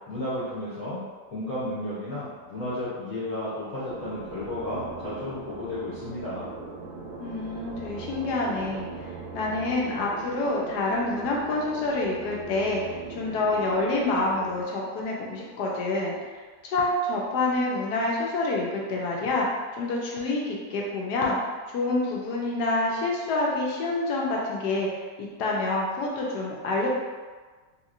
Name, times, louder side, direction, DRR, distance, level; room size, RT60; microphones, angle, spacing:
voice 1, 0.1-1.0 1.3-6.5, left 1 dB, 60° left, -11 dB, 1.2 m, -33 dB
sound 1, 3.9-14.6, right 3 dB, 75° right, 1.2 m, -40 dB
voice 2, 7.2-8.9 9.3-16.2 16.6-19.5 19.7-21.4 21.7-24.9 25.2-26.9, left 2 dB, 80° left, -3 dB, 1.2 m, -27 dB
3.0 x 2.9 x 2.4 m, 1.4 s
omnidirectional pair, 1.8 m